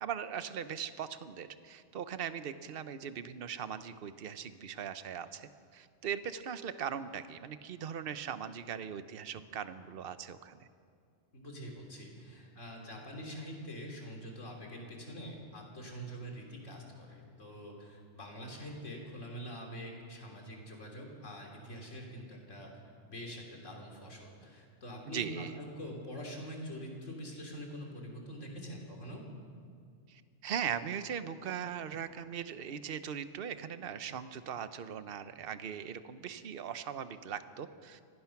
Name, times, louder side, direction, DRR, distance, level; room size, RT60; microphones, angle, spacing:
voice 1, 0.0-10.7 25.1-25.5 30.1-38.0, right 8 dB, 55° right, 11 dB, 1.0 m, -40 dB
voice 2, 11.3-22.7 23.0-25.5 25.8-29.2, equal, 75° left, 0 dB, 3.6 m, -45 dB
25.5 x 17.5 x 5.9 m, 2.2 s
omnidirectional pair, 1.3 m